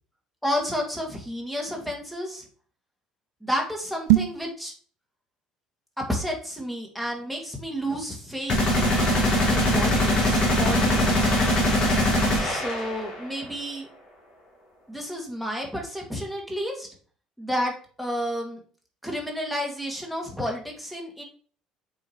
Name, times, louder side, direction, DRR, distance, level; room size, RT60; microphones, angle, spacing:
voice 1, 0.4-2.4 3.4-4.7 6.0-8.9 9.5-11.3 12.4-13.9 14.9-16.9 17.4-17.7 18.0-18.6 19.0-21.2, equal, ahead, 0 dB, 2.2 m, -31 dB
sound 1, 4.0-4.5, right 16 dB, 60° right, 0.4 m, -21 dB
sound 2, 8.5-13.2, left 1 dB, 40° left, 3.0 m, -22 dB
7.2 x 5.0 x 3.1 m, 0.43 s
figure-of-eight pair, 55°, 3 cm